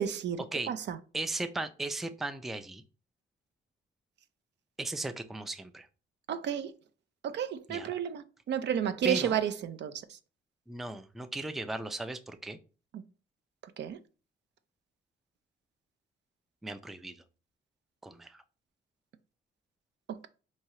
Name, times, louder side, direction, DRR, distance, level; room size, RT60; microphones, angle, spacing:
voice 1, 0.0-0.4 0.7-1.0 6.3-6.7 7.2-10.0 13.8-14.0, right 9 dB, 60° right, 0.5 m, -31 dB
voice 2, 1.1-2.8 4.8-5.9 7.7-7.9 9.0-9.4 10.7-12.6 16.6-17.2 18.0-18.4, right 2 dB, ahead, 0.3 m, -36 dB
4.5 x 2.8 x 3.0 m
cardioid pair, 90°, 20 cm